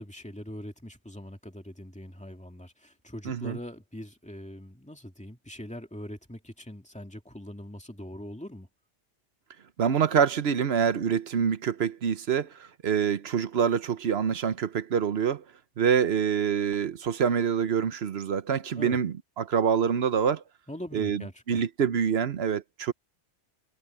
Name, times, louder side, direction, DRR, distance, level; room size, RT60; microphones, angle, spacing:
voice 1, 0.0-8.7 18.8-19.0 20.7-21.6, left 1 dB, 5° left, 2.4 m, -42 dB
voice 2, 3.3-3.6 9.8-15.4 15.8-20.4 20.9-21.2 21.5-22.9, right 7 dB, 60° right, 1.0 m, -26 dB
omnidirectional pair, 1.2 m